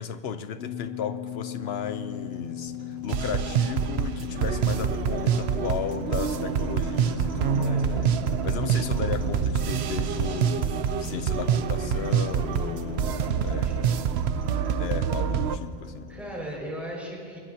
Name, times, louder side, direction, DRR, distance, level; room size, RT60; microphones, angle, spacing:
voice 1, 0.0-8.1 8.4-14.2 14.8-16.1, left 7 dB, 80° left, 11 dB, 1.0 m, -35 dB
sound 1, 0.6-16.4, left 14 dB, 60° left, 0.9 m, -40 dB
sound 2, 1.4-16.6, equal, 60° right, 5.2 m, -40 dB
sound 3, 3.1-15.6, right 8 dB, 85° right, 0.9 m, -26 dB
voice 2, 7.6-8.0 13.0-13.9 16.1-17.4, equal, ahead, -5 dB, 5.6 m, -38 dB
22.5 x 22.5 x 2.9 m, 2.2 s
omnidirectional pair, 1.0 m